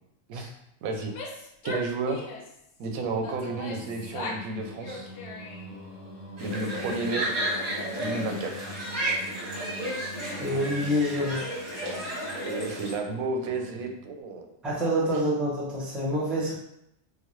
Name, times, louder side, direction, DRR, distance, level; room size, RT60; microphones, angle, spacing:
voice 1, 0.8-1.1 1.6-2.3 2.8-5.1 6.4-7.2 8.0-8.7 12.4-14.5, right 3 dB, 90° right, 3 dB, 1.0 m, -32 dB
Female speech woman speaking / Yell, 1.0-2.6 3.2-4.5 4.8-5.8, left 2 dB, 65° left, 0.8 m, -39 dB
Singing, 3.0-14.1, left 1 dB, 30° left, 0.9 m, -44 dB
sound 1, 6.4-12.9, right 1 dB, 35° right, 0.8 m, -32 dB
voice 2, 10.4-11.5 14.6-16.6, equal, ahead, -5 dB, 0.5 m, -27 dB
3.8 x 2.1 x 3.1 m, 0.77 s
omnidirectional pair, 1.4 m